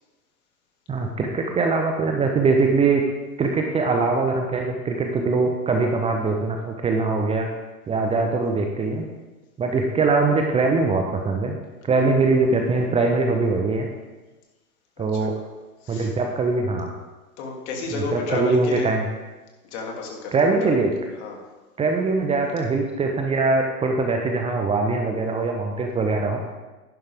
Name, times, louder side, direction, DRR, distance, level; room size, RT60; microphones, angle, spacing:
voice 1, 0.9-3.0 3.4-7.5 7.9-9.1 9.6-11.6 11.8-13.9 15.0-15.4 15.9-16.9 17.9-19.1 20.3-20.9 21.8-26.4, right 3 dB, 15° right, 2 dB, 0.8 m, -22 dB
voice 2, 17.4-18.9 19.6-20.7 21.2-21.4, left 3 dB, 45° left, 1 dB, 2.8 m, -31 dB
11.0 x 11.0 x 3.5 m, 1.2 s
figure-of-eight pair, 100°, 46 cm